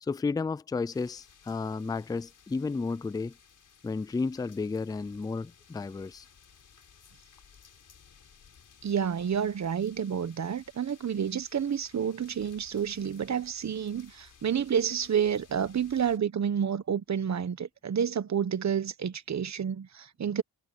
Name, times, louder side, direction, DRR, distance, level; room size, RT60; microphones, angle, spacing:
voice 1, 0.0-3.3 3.8-6.3, left 4 dB, 10° left, 0.4 m, -32 dB
sound 1, 0.9-16.2, left 7 dB, 55° left, 5.1 m, -58 dB
voice 2, 8.8-20.4, right 8 dB, 45° right, 1.3 m, -29 dB
cardioid pair, 100°, 37 cm